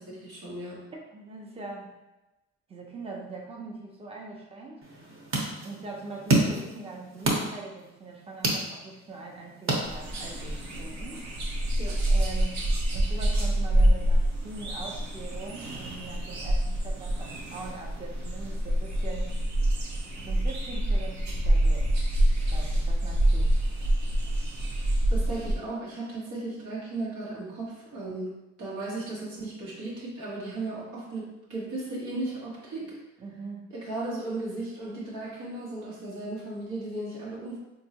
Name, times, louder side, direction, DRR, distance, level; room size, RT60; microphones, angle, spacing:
voice 1, 0.1-0.8 11.8-12.0 25.1-33.0 33.7-37.6, right 2 dB, 85° right, -5 dB, 1.3 m, -36 dB
voice 2, 1.1-1.9 2.7-4.9 5.6-11.3 12.1-19.3 20.2-22.0 22.4-23.5 33.2-33.7, right 3 dB, 20° right, -1 dB, 0.6 m, -42 dB
sound 1, 4.8-10.5, right 2 dB, 45° right, 1.0 m, -30 dB
sound 2, 9.8-25.5, right 1 dB, 65° right, 0.8 m, -26 dB
3.9 x 2.7 x 2.8 m, 1.0 s
cardioid pair, 90°, 30 cm